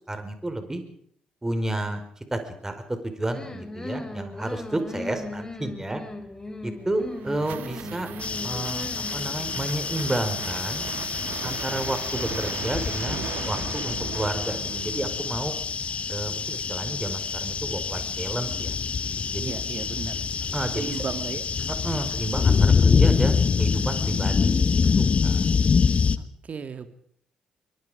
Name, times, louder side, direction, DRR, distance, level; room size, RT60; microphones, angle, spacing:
voice 1, 0.1-0.8 1.4-2.0 2.3-6.0 6.6-8.1 8.4-10.9 11.4-15.5 16.1-18.7 19.3-19.5 20.5-21.0 21.7-24.5 25.0-25.4, right 1 dB, 15° right, 7 dB, 5.1 m, -31 dB
sound 1, 3.3-9.7, left 2 dB, 20° left, 3.6 m, -38 dB
sound 2, 6.8-15.6, right 11 dB, 65° right, 1.5 m, -38 dB
sound 3, 8.2-26.2, left 5 dB, 40° left, 1.1 m, -25 dB
voice 2, 19.4-20.3 20.8-21.4 26.2-26.9, right 6 dB, 45° right, 10 dB, 2.4 m, -35 dB
24.0 x 23.5 x 5.2 m, 0.65 s
figure-of-eight pair, 40°, 3 cm